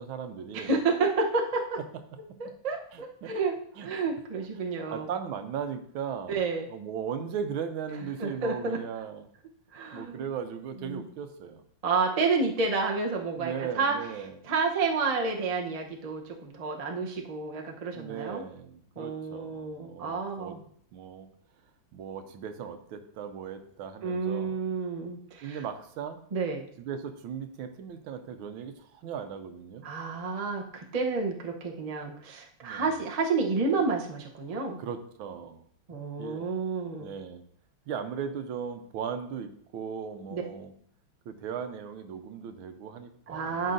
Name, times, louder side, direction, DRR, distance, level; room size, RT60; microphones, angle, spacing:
voice 1, 0.0-0.8 2.9-3.3 3.8-3.9 4.9-6.4 6.7-9.3 9.9-11.6 13.4-14.4 17.8-20.6 20.9-21.3 21.9-24.6 25.4-26.2 26.8-29.9 32.6-33.0 34.8-35.6 36.2-36.5 37.0-37.4 37.9-40.7 41.2-43.7, right 7 dB, 90° right, 8 dB, 1.6 m, -37 dB
voice 2, 0.5-1.8 2.4-3.5 3.8-5.1 6.3-6.7 8.2-8.8 9.7-10.2 10.8-11.0 11.8-14.0 14.5-18.4 19.0-20.6 24.0-25.6 26.3-26.7 29.8-34.8 35.9-37.1 40.3-40.4 43.3-43.7, right 4 dB, 55° right, 0 dB, 0.4 m, -30 dB
12.0 x 5.5 x 2.6 m, 0.64 s
omnidirectional pair, 2.2 m